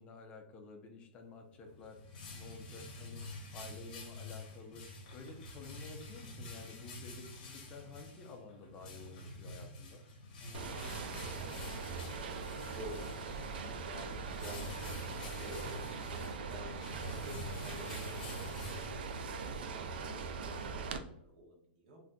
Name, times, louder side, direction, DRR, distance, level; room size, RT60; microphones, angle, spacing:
voice 1, 0.0-3.2 3.5-4.9 5.1-10.0 16.3-16.5 19.9-20.4, left 3 dB, 20° left, 3 dB, 0.4 m, -52 dB
sound 1, 1.5-19.4, left 2 dB, 45° left, 0.8 m, -48 dB
voice 2, 10.4-14.6 15.1-18.6 19.0-19.7 20.0-22.0, equal, 50° right, 0 dB, 1.1 m, -52 dB
sound 2, 10.5-21.0, right 4 dB, 65° right, 0.3 m, -41 dB
3.7 x 2.6 x 2.2 m, 0.76 s
supercardioid pair, 170°, 6 cm